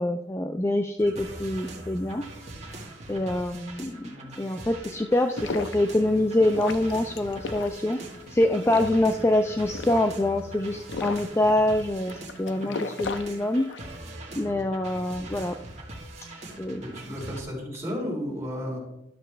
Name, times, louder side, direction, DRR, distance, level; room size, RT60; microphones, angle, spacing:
voice 1, 0.0-2.2 3.1-8.0 8.3-13.7 14.4-15.5 16.6-16.8, left 1 dB, 15° left, 6 dB, 0.3 m, -25 dB
sound 1, 1.0-17.4, right 1 dB, 35° right, 1.4 m, -42 dB
sound 2, 5.1-14.0, left 4 dB, 80° left, 0.6 m, -37 dB
voice 2, 16.8-18.8, equal, 15° right, -5 dB, 3.4 m, -33 dB
12.0 x 6.4 x 3.2 m, 0.83 s
head